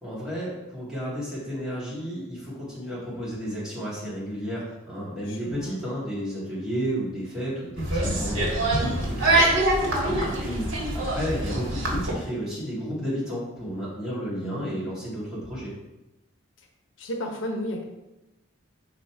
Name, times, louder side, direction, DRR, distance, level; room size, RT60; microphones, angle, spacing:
voice 1, 0.0-15.7, equal, 5° right, -9 dB, 2.1 m, -32 dB
voice 2, 5.3-5.8 10.0-10.3 14.4-15.0 17.0-17.8, left 1 dB, 75° left, 3 dB, 0.9 m, -34 dB
sound 1, 7.8-12.1, right 1 dB, 75° right, 1.6 m, -24 dB
5.6 x 3.9 x 4.6 m, 1.0 s
head